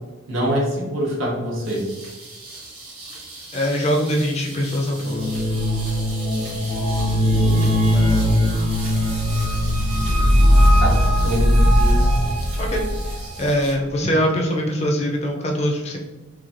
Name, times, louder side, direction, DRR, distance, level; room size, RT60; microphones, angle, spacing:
voice 1, 0.3-1.9 6.4-6.8 7.4-7.8 10.8-11.0 11.2-12.1, equal, 65° right, -3 dB, 0.9 m, -25 dB
sound 1, 1.6-13.7, right 2 dB, 85° right, 1.4 m, -38 dB
voice 2, 3.5-5.3 12.6-12.8 13.4-16.0, equal, 30° left, 1 dB, 0.4 m, -22 dB
sound 2, 5.0-13.3, equal, 35° right, 0.8 m, -18 dB
3.1 x 2.6 x 2.5 m, 1.2 s
head